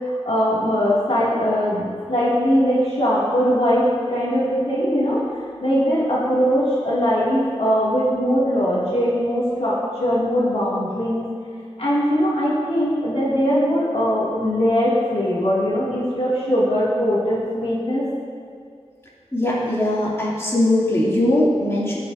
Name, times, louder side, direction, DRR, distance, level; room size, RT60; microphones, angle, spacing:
voice 1, 0.0-5.2 5.6-9.7 10.0-11.3 11.8-18.1, equal, 65° left, -8 dB, 2.2 m, -20 dB
voice 2, 19.3-22.0, left 1 dB, 25° left, -7 dB, 2.6 m, -20 dB
16.5 x 6.4 x 2.6 m, 2.2 s
wide cardioid pair, 50°, 11 cm